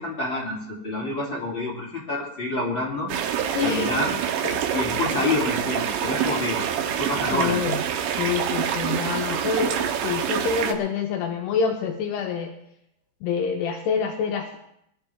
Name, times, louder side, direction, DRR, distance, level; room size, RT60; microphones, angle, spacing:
voice 1, 0.0-3.1 3.6-4.1 4.7-6.6 7.0-7.6, left 2 dB, 30° left, -4 dB, 3.0 m, -27 dB
sound 1, 3.1-10.7, right 9 dB, 80° right, 3.2 m, -26 dB
voice 2, 3.5-4.0 4.4-4.8 6.1-6.4 7.3-7.8 8.2-12.5 13.2-14.6, left 6 dB, 75° left, 1 dB, 3.0 m, -27 dB
21.5 x 12.5 x 3.5 m, 0.75 s
omnidirectional pair, 5.1 m